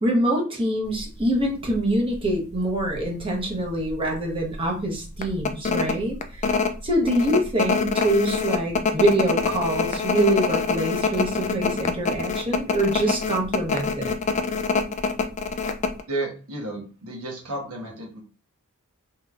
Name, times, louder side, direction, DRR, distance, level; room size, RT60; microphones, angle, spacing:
voice 1, 0.0-14.1, right 1 dB, 25° right, -1 dB, 0.9 m, -25 dB
sound 1, 1.0-1.2 1.7-1.8 2.1-3.0 3.4-3.5 3.9-4.1 4.5-4.6 5.2-16.0, left 5 dB, 30° left, 0.3 m, -25 dB
voice 2, 16.0-18.2, right 2 dB, 80° right, -1 dB, 1.2 m, -32 dB
3.1 x 2.9 x 2.4 m, 0.35 s
head